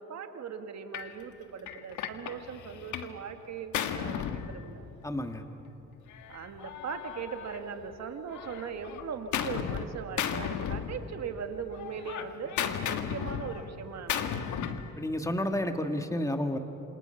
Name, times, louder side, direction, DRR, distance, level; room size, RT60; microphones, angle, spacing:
voice 1, 0.0-4.9 6.3-14.6, right 6 dB, 60° right, 6 dB, 2.0 m, -40 dB
Gunshot gunfire, 0.9-1.1 1.7-3.2 3.4-5.2 6.1-7.9 8.3-9.9 10.2-11.4 11.7-14.9, left 8 dB, 75° left, 1.5 m, -35 dB
voice 2, 5.0-5.5 15.0-16.6, left 1 dB, 10° left, 6 dB, 1.9 m, -30 dB
28.0 x 27.0 x 5.8 m, 2.9 s
cardioid pair, 90°, 30 cm